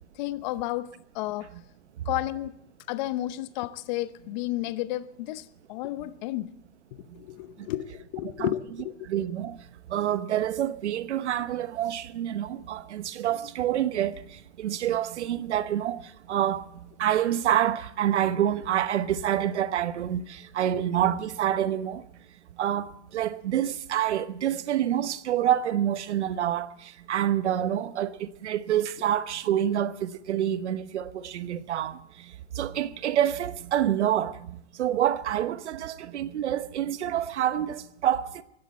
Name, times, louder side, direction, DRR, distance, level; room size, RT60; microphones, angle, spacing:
voice 1, 0.1-1.5 2.0-2.5 2.9-6.5 7.0-9.0 20.7-20.8, left 15 dB, 40° left, 0.9 m, -32 dB
voice 2, 9.0-9.6 9.9-16.7 17.0-22.0 22.6-38.4, right 11 dB, 85° right, 1.1 m, -27 dB
19.5 x 16.0 x 4.3 m
supercardioid pair, 155°, 34 cm